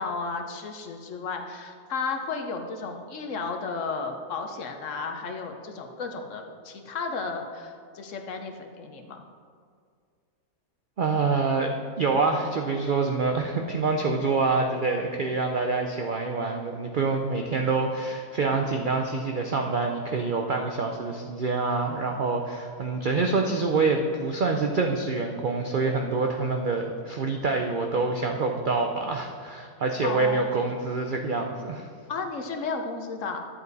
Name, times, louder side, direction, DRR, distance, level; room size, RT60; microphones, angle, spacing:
voice 1, 0.0-9.2 30.0-30.7 32.1-33.4, left 4 dB, 60° left, 4 dB, 1.0 m, -33 dB
voice 2, 11.0-31.9, right 4 dB, 65° right, 3 dB, 0.4 m, -26 dB
11.0 x 7.4 x 4.0 m, 2.1 s
omnidirectional pair, 1.6 m